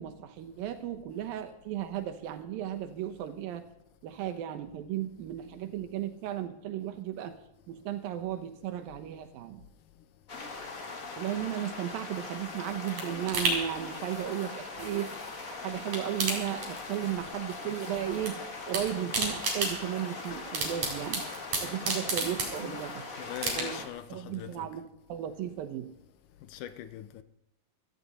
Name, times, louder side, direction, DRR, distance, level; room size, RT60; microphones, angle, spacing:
voice 1, 0.0-3.6 4.0-7.4 7.7-9.6 11.2-15.2 15.5-21.3 21.6-23.1 23.5-23.9 24.1-25.9, right 11 dB, 85° right, 2.8 m, -35 dB
sound 1, 10.3-23.9, left 3 dB, 40° left, 1.2 m, -41 dB
sound 2, 12.2-15.4 15.7-17.3 17.5-18.3 18.6-22.9 23.4-24.0 24.4-24.5, right 3 dB, 55° right, 4.8 m, -34 dB
voice 2, 21.7-22.1 22.6-22.8 23.2-24.7 26.4-27.2, left 11 dB, 75° left, 2.1 m, -42 dB
16.5 x 13.5 x 4.2 m
omnidirectional pair, 4.0 m